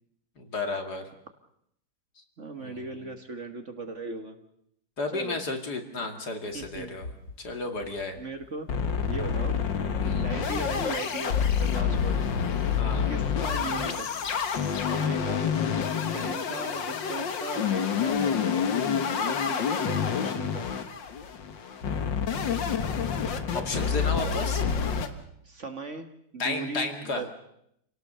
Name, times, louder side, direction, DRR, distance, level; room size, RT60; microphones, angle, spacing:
voice 1, 0.4-1.1 2.6-3.1 5.0-7.1 7.4-8.2 10.0-10.3 12.8-13.1 23.5-24.6 26.4-27.2, left 3 dB, 60° left, 5 dB, 2.9 m, -33 dB
voice 2, 2.4-4.4 5.1-5.4 6.5-7.0 8.2-8.7 9.0-9.6 10.0-12.3 13.1-14.1 14.8-15.5 16.1-18.7 19.1-20.7 25.4-27.3, right 3 dB, 40° right, 7 dB, 1.8 m, -38 dB
sound 1, 6.6-7.5 7.8-7.9 8.2-8.3 8.7-25.1, left 7 dB, 75° left, 2.2 m, -28 dB
28.5 x 18.0 x 6.8 m, 0.75 s
omnidirectional pair, 2.0 m